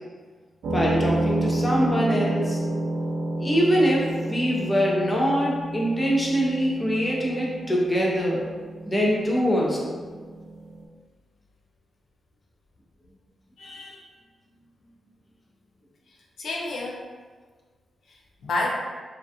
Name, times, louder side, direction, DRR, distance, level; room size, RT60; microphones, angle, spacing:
sound 1, 0.6-10.8, right 1 dB, 90° right, 0.3 m, -30 dB
voice 1, 0.7-2.6 3.4-8.4 8.9-9.9, equal, 15° left, -3 dB, 0.5 m, -23 dB
voice 2, 13.6-14.1 16.1-17.1 18.1-18.7, left 2 dB, 70° left, -1 dB, 0.3 m, -31 dB
2.3 x 2.2 x 2.6 m, 1.5 s
wide cardioid pair, 115°, 0 cm